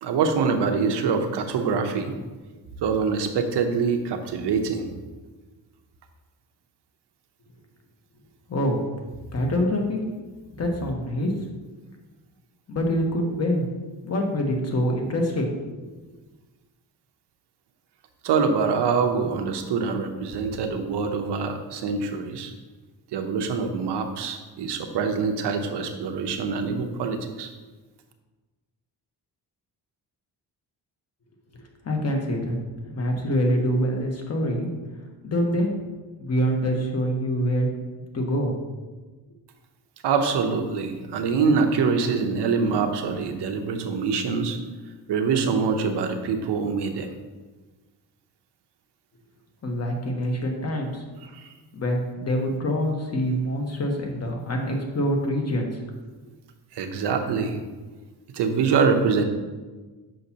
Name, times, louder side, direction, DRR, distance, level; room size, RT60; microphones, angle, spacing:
voice 1, 0.0-2.1 2.8-4.9 18.2-22.5 23.1-27.5 40.0-44.6 45.1-47.1 51.3-51.5 56.7-57.6 58.3-59.2, right 5 dB, 80° right, 5 dB, 0.8 m, -24 dB
voice 2, 8.5-8.8 9.3-10.0 10.6-11.3 12.7-13.7 14.0-15.8 31.8-32.6 32.9-34.7 35.2-35.7 36.2-37.7 38.1-38.5 49.6-51.0 51.7-55.7, equal, 40° left, 2 dB, 1.2 m, -25 dB
6.5 x 5.7 x 2.8 m, 1.3 s
cardioid pair, 100°, 40 cm